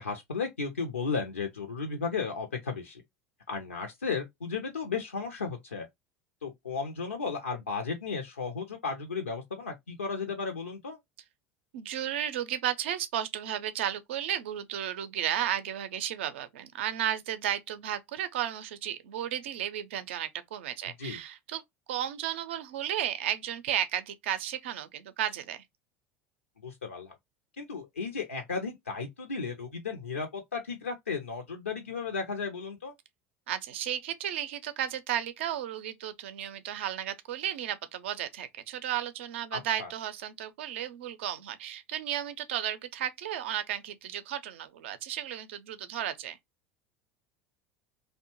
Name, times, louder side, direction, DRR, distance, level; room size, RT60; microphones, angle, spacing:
voice 1, 0.0-3.0 3.5-5.9 6.4-11.0 21.0-21.2 26.6-27.1 27.6-32.9 39.5-39.9, left 5 dB, 85° left, 0.5 m, -34 dB
voice 2, 11.7-21.6 21.9-25.6 33.5-46.4, right 11 dB, 70° right, 0.5 m, -34 dB
2.7 x 2.1 x 2.9 m
figure-of-eight pair, 75°, 7 cm